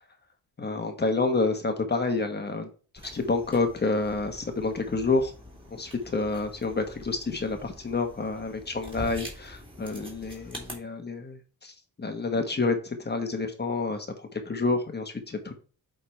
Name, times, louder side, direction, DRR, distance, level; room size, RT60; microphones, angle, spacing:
voice 1, 0.6-2.7 3.0-5.3 5.7-11.7 12.0-15.6, left 3 dB, 25° left, 5 dB, 1.4 m, -29 dB
sound 1, 3.0-10.7, equal, 15° right, 2.8 m, -45 dB
8.4 x 3.9 x 4.5 m, 0.38 s
cardioid pair, 115°, 37 cm